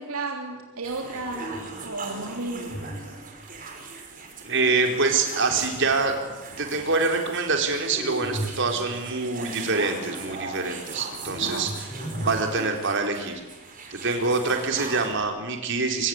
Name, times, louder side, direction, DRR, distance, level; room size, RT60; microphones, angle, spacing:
voice 1, 0.0-2.9 11.4-11.6, right 2 dB, 70° right, 2 dB, 3.5 m, -33 dB
sound 1, 0.8-15.1, right 3 dB, 40° right, 5.6 m, -40 dB
sound 2, 1.3-2.0 2.7-3.6 5.5-6.0 7.9-9.0 11.1-13.3 14.8-15.3, right 1 dB, 20° left, 4.6 m, -36 dB
voice 2, 4.4-11.9 12.2-13.3 13.9-16.1, right 3 dB, 55° right, 4 dB, 4.4 m, -25 dB
24.5 x 24.0 x 9.7 m, 1.1 s
head